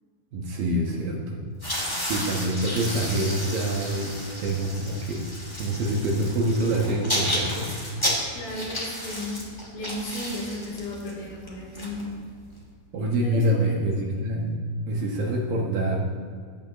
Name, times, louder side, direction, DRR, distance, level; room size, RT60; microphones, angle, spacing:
voice 1, 0.3-1.4 2.0-5.3 5.6-7.7 12.9-16.0, right 1 dB, 65° right, -1 dB, 2.4 m, -26 dB
sound 1, 1.5-12.6, left 1 dB, 40° left, 0.4 m, -32 dB
voice 2, 8.3-9.4 9.7-12.2 13.1-13.9, left 1 dB, 80° left, -10 dB, 5.3 m, -34 dB
16.5 x 12.0 x 3.0 m, 2.1 s
omnidirectional pair, 5.3 m